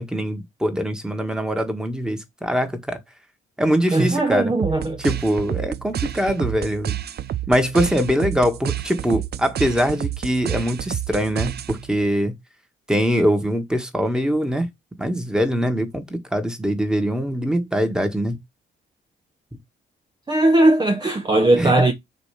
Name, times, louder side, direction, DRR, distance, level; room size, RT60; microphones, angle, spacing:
voice 1, 0.0-3.0 3.6-4.5 5.0-7.0 7.5-12.3 12.9-14.7 15.0-18.4 21.5-21.7, equal, 5° right, 1.7 m, -22 dB
voice 2, 3.9-5.0 20.3-21.9, right 2 dB, 20° right, 1.0 m, -18 dB
sound 1, 4.6-12.0, right 11 dB, 55° right, 0.6 m, -29 dB
6.9 x 3.0 x 5.8 m
cardioid pair, 90°, 20 cm